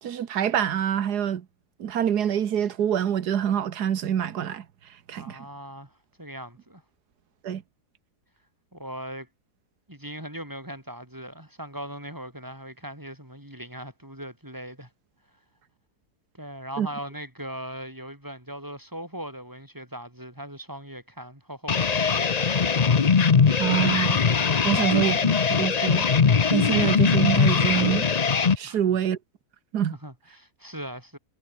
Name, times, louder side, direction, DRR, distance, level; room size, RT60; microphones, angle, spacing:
voice 1, 0.0-1.4 1.8-4.6 5.1-5.4 7.4-7.6 16.8-16.9 23.6-24.2 24.6-25.3 25.6-26.0 26.5-28.1 28.6-29.2 29.7-30.0, right 9 dB, 85° right, 1.8 m, -25 dB
voice 2, 5.1-5.9 6.2-6.8 8.7-9.3 9.9-14.9 16.4-22.2 28.6-29.0 30.0-31.2, equal, 10° right, 7.0 m, -39 dB
sound 1, 21.7-28.6, left 6 dB, 35° left, 0.7 m, -21 dB
omnidirectional pair, 1.7 m